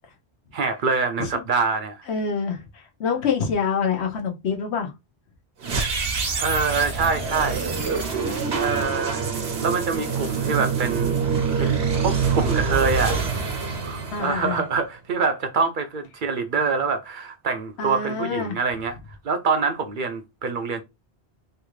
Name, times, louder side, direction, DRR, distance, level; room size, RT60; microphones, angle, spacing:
voice 1, 0.5-2.1 6.4-7.7 8.1-8.3 8.6-9.3 9.6-11.2 11.6-13.2 13.8-19.0 19.2-20.8, right 4 dB, 60° right, 0.6 m, -25 dB
voice 2, 2.1-4.9 14.1-14.6 17.8-18.6, left 6 dB, 80° left, 1.1 m, -26 dB
sound 1, 5.6-14.8, right 5 dB, 80° right, 1.2 m, -25 dB
3.2 x 2.4 x 3.1 m
omnidirectional pair, 1.1 m